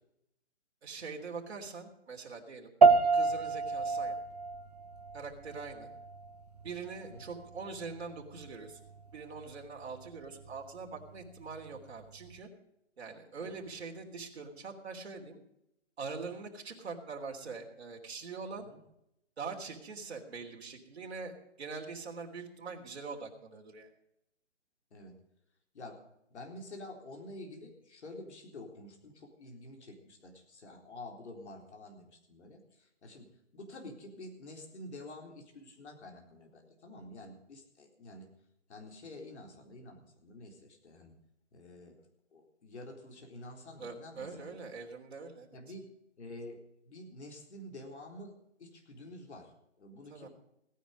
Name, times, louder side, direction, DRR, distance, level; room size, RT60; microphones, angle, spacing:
voice 1, 0.8-2.7 3.1-4.1 5.1-5.9 6.6-8.8 9.1-12.5 13.0-15.4 16.0-18.7 19.4-23.9 43.8-45.5 50.1-50.3, right 4 dB, 55° right, 1 dB, 3.4 m, -43 dB
sound 1, 2.8-12.4, right 4 dB, 35° right, 0.5 m, -31 dB
voice 2, 25.7-26.1 26.3-38.3 38.7-41.2 41.5-42.0 42.3-44.5 45.5-45.9 46.2-50.3, left 1 dB, 65° left, 2 dB, 4.0 m, -49 dB
17.5 x 10.0 x 5.2 m, 0.82 s
hypercardioid pair, 170°, 37 cm